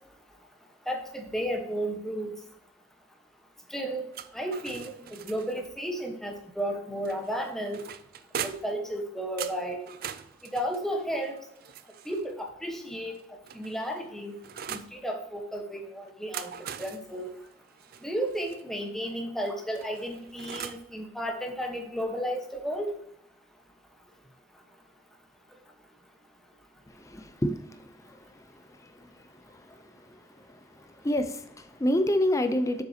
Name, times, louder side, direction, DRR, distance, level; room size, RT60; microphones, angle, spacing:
voice 1, 0.9-2.3 3.7-4.0 4.3-7.8 8.4-9.8 10.4-11.4 12.1-13.1 13.5-14.3 14.7-16.5 16.8-17.3 18.0-22.9, equal, ahead, 2 dB, 1.2 m, -33 dB
sound 1, 4.1-5.7 7.0-8.8 9.4-12.3 13.1-15.0 16.1-18.6 19.7-20.9, right 8 dB, 55° right, 0.4 m, -41 dB
voice 2, 27.0-27.7 30.1-30.2 31.0-32.8, left 1 dB, 15° left, 8 dB, 0.6 m, -27 dB
7.4 x 6.4 x 2.8 m, 0.75 s
head